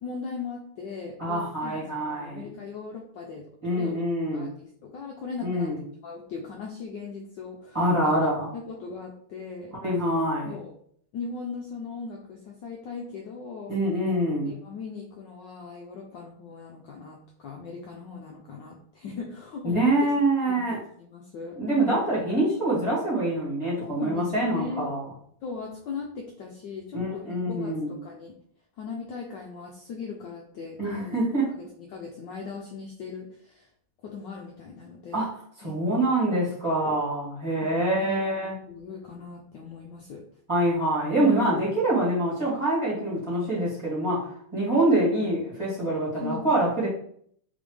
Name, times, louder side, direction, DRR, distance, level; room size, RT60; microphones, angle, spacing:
voice 1, 0.0-4.0 4.3-5.7 6.0-8.1 8.5-9.7 10.4-10.7 11.1-13.8 14.4-20.1 20.5-22.0 23.8-24.9 25.4-28.4 28.8-31.2 31.5-33.7 34.0-35.2 35.6-35.7 36.8-37.0 37.6-38.2 38.6-40.2 41.2-41.5 46.2-46.5, left 5 dB, 70° left, 0 dB, 1.1 m, -38 dB
voice 2, 1.2-2.5 3.6-4.5 5.4-5.8 7.7-8.5 9.8-10.6 13.7-14.6 19.6-20.8 21.6-25.0 26.9-27.9 30.8-31.5 35.1-35.3 35.6-38.6 40.5-44.3 44.5-46.9, right 1 dB, 15° right, -9 dB, 1.8 m, -25 dB
4.1 x 3.5 x 3.2 m, 0.63 s
omnidirectional pair, 2.4 m